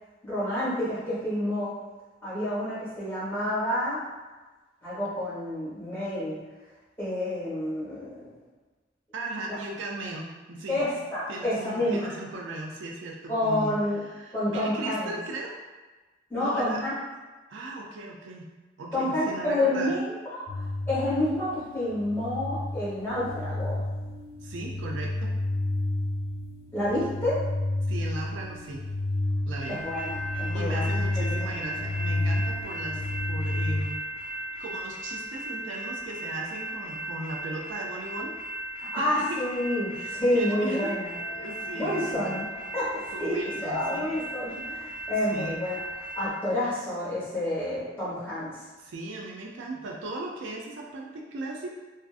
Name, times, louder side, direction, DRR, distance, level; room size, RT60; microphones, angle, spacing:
voice 1, 0.2-1.7 2.2-4.0 4.8-6.4 7.0-8.4 9.5-9.6 10.7-12.1 13.3-14.0 14.3-15.1 16.3-17.0 18.9-20.5 20.9-23.8 26.7-27.4 29.7-31.5 38.8-41.1 41.7-42.5 42.7-45.8 46.2-48.6, left 1 dB, 10° left, -11 dB, 1.1 m, -29 dB
voice 2, 9.1-10.8 11.3-15.6 16.4-16.8 17.5-18.5 18.8-19.9 24.4-25.3 27.9-28.8 29.4-29.8 30.2-34.0 34.6-38.3 38.6-39.4 39.9-42.4 43.1-44.1 44.5-44.7 45.3-45.6 48.8-51.7, right 2 dB, 75° right, -1 dB, 0.4 m, -37 dB
sound 1, 20.5-33.8, left 2 dB, 65° left, 0.7 m, -31 dB
sound 2, 29.6-46.3, right 1 dB, 25° left, 0.6 m, -37 dB
2.4 x 2.4 x 2.3 m, 1.2 s
head